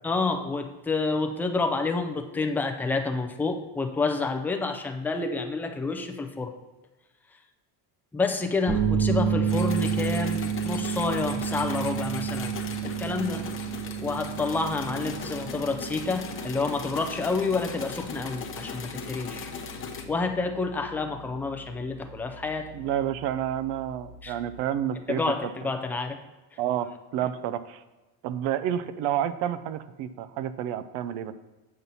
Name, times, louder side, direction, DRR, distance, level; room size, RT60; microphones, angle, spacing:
voice 1, 0.0-6.5 8.1-12.6 12.8-13.5 14.0-19.5 20.1-22.7 24.2-24.4 25.1-26.2, left 3 dB, 5° left, 5 dB, 0.3 m, -29 dB
sound 1, 8.7-24.6, right 7 dB, 20° right, 0.9 m, -32 dB
sound 2, 9.5-20.0, left 5 dB, 30° left, 0.7 m, -38 dB
voice 2, 22.7-25.7 26.6-27.8 28.2-31.3, right 10 dB, 70° right, 12 dB, 0.6 m, -30 dB
7.7 x 5.5 x 4.0 m, 1.1 s
cardioid pair, 130°, 45 cm